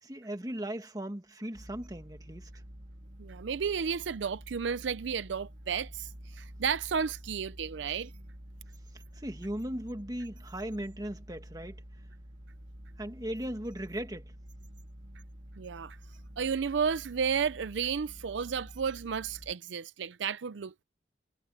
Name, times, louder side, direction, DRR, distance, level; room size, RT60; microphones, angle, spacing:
voice 1, 0.0-2.5 9.2-11.8 13.0-14.3, right 1 dB, 20° right, 1.7 m, -37 dB
sound 1, 1.5-19.5, equal, 45° right, 2.1 m, -49 dB
voice 2, 3.2-8.1 15.6-16.0 16.4-20.8, right 6 dB, 75° right, 0.5 m, -32 dB
head